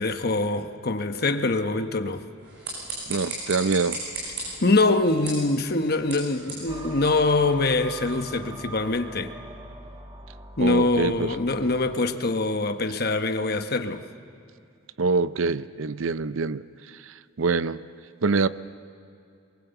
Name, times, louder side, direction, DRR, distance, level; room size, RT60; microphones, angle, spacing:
voice 1, 0.0-2.3 4.6-9.3 10.6-14.1, left 2 dB, 45° left, 1.1 m, -24 dB
sound 1, 2.4-7.7, right 2 dB, 50° right, 7.7 m, -37 dB
voice 2, 3.1-4.0 10.6-11.4 15.0-16.6 17.0-17.8 18.2-18.5, right 4 dB, 75° right, 0.6 m, -25 dB
sound 2, 6.7-12.0, right 2 dB, 20° right, 1.3 m, -42 dB
24.0 x 22.5 x 8.0 m
head